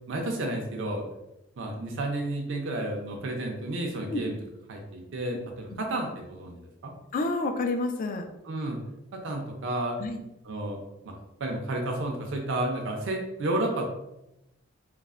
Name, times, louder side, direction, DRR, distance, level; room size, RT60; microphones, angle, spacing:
voice 1, 0.1-1.0 1.6-4.4 4.7-6.9 8.5-8.8 9.1-10.0 10.4-10.8 11.4-13.8, right 1 dB, 65° right, 1 dB, 0.5 m, -31 dB
voice 2, 7.1-8.3 10.0-10.2, left 2 dB, 40° left, 5 dB, 0.3 m, -29 dB
3.1 x 2.0 x 2.4 m, 0.89 s
head